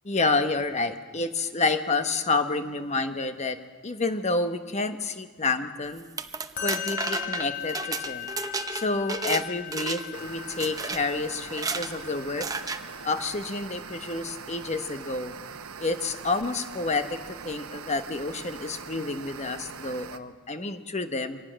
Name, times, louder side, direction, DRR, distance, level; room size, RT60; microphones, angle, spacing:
voice 1, 0.0-3.6 3.8-6.1 6.6-8.3 8.7-12.5 13.0-15.3 15.8-17.1 17.4-21.4, left 3 dB, 30° left, 8 dB, 1.1 m, -29 dB
sound 1, 6.0-9.4 9.7-10.2 10.6-11.0 11.5-11.9 12.4-12.8, right 4 dB, 15° right, 0.7 m, -32 dB
Musical instrument, 6.6-13.8, left 11 dB, 50° left, 2.9 m, -39 dB
sound 2, 10.1-20.2, right 6 dB, 85° right, 1.0 m, -42 dB
24.5 x 18.0 x 6.4 m, 1.5 s
head